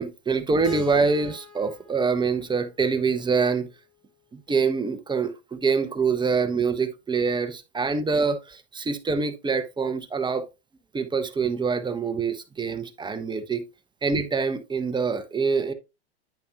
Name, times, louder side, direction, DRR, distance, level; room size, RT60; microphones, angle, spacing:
voice 1, 0.0-3.7 4.5-10.5 10.9-13.6 14.0-15.7, right 5 dB, 15° right, 1.2 m, -25 dB
Keyboard (musical), 0.6-3.6, left 9 dB, 85° left, 5.1 m, -41 dB
10.5 x 5.2 x 3.0 m
hypercardioid pair, 110°, 33 cm